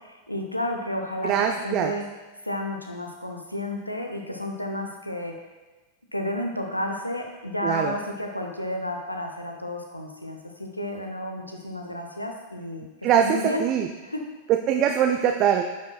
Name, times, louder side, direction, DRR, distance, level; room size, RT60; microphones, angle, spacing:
voice 1, 0.0-2.1 2.4-5.3 6.1-12.9 13.2-13.6 14.0-14.3, left 1 dB, 85° left, 3 dB, 0.7 m, -31 dB
voice 2, 1.2-1.9 7.6-7.9 13.0-13.3 13.6-13.9 14.7-15.6, right 9 dB, 35° right, 4 dB, 0.4 m, -22 dB
9.2 x 5.1 x 2.3 m, 1.2 s
figure-of-eight pair, 90°, 0 cm